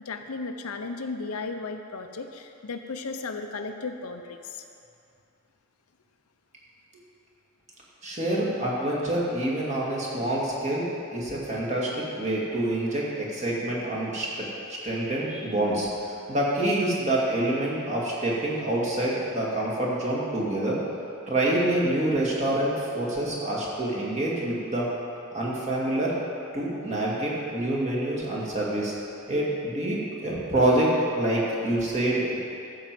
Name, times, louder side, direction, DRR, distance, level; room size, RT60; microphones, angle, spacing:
voice 1, 0.1-4.7, left 3 dB, 90° left, 6 dB, 0.7 m, -35 dB
voice 2, 8.0-14.5 14.8-20.8 21.3-24.9 25.3-26.2 26.5-28.9 29.3-32.4, right 1 dB, 30° right, -5 dB, 2.2 m, -26 dB
12.5 x 4.7 x 7.6 m, 2.6 s
head